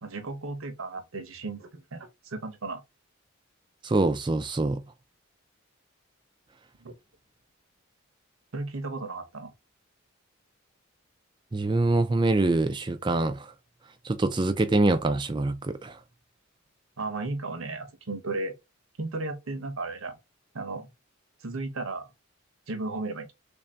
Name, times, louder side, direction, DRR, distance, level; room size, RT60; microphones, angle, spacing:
voice 1, 0.0-2.8 6.8-6.9 8.5-9.5 17.0-18.5 19.0-20.1 20.5-20.9 21.4-22.1 22.7-23.3, right 3 dB, 75° right, 0.9 m, -34 dB
voice 2, 3.8-4.8 11.5-13.5 14.0-16.0, right 2 dB, 20° right, 0.4 m, -25 dB
3.3 x 2.6 x 3.3 m
head